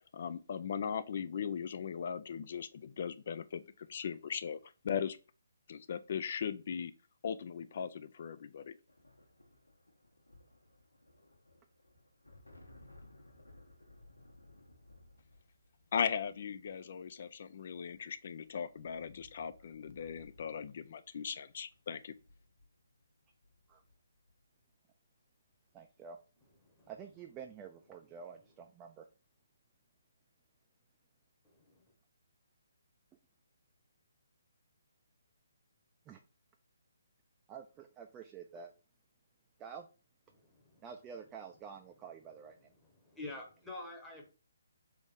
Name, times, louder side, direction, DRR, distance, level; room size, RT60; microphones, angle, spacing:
voice 1, 0.1-3.6 3.9-4.6 4.8-5.2 5.7-6.9 7.2-8.8 15.9-22.1, left 7 dB, 50° left, 0.3 m, -38 dB
sound 1, 8.9-24.6 25.8-26.0 26.3-27.0, left 1 dB, 90° left, 1.1 m, -61 dB
voice 2, 25.7-26.2 26.9-29.1 36.1-36.2 37.5-38.7 39.6-39.9 40.8-42.6, right 7 dB, 20° right, 0.5 m, -49 dB
voice 3, 31.4-31.8 40.3-40.8 42.8-44.3, left 2 dB, 5° left, 0.9 m, -48 dB
4.0 x 3.5 x 3.6 m
figure-of-eight pair, 140°, 0 cm